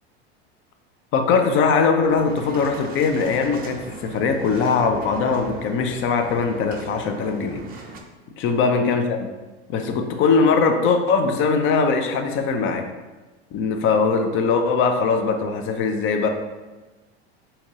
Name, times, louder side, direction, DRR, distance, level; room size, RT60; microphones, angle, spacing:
voice 1, 1.1-7.6 8.4-9.3 9.7-12.9 13.5-16.3, left 5 dB, 40° left, 5 dB, 0.5 m, -21 dB
sound 1, 2.1-8.0, right 4 dB, 30° right, 0.4 m, -40 dB
4.3 x 2.8 x 2.7 m, 1.2 s
hypercardioid pair, 105°, 32 cm